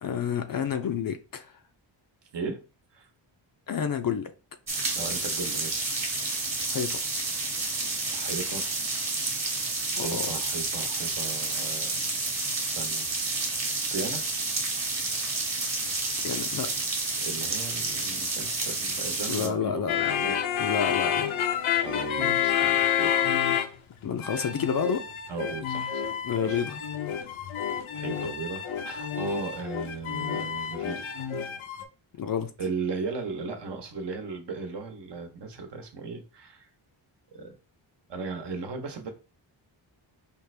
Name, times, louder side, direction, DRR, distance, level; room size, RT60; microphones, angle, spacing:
voice 1, 0.0-1.5 3.7-4.3 6.7-7.0 10.0-10.3 16.2-16.7 19.3-20.2 20.6-21.3 24.0-25.0 26.2-26.8 32.2-32.5, left 7 dB, 50° left, 0.5 m, -29 dB
voice 2, 2.3-2.6 2.9-3.1 4.9-5.9 7.8-8.7 10.0-12.1 12.6-13.1 13.9-14.3 17.2-20.4 21.8-23.3 23.6-23.7 25.3-26.6 27.9-31.1 32.6-36.7 37.3-37.6 38.1-39.1, right 4 dB, 60° right, 1.1 m, -36 dB
sound 1, 4.7-19.5, right 3 dB, 35° right, 1.3 m, -30 dB
sound 2, 19.9-23.9 24.2-31.8, left 9 dB, 85° left, 0.7 m, -29 dB
5.1 x 2.5 x 3.2 m
wide cardioid pair, 150°, 47 cm